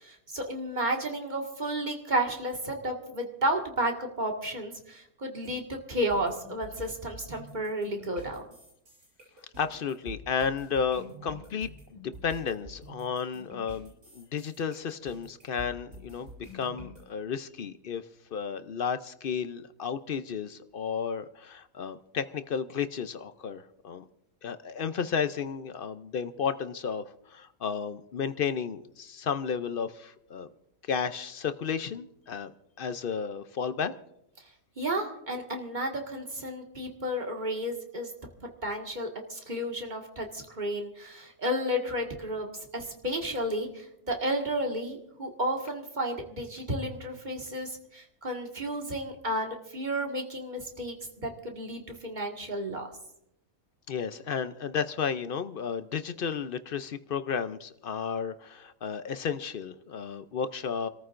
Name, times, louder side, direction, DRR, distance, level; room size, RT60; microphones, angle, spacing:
voice 1, 0.0-8.5 34.8-38.1 38.4-52.9, right 1 dB, 30° right, 1 dB, 1.9 m, -32 dB
sound 1, 6.1-17.0, equal, 85° right, 7.8 m, -47 dB
voice 2, 9.6-16.3 16.5-18.0 18.3-24.0 24.4-30.5 30.9-32.5 32.8-33.9 53.9-60.9, left 6 dB, 55° left, 11 dB, 0.6 m, -33 dB
29.0 x 14.0 x 2.5 m, 0.79 s
omnidirectional pair, 1.5 m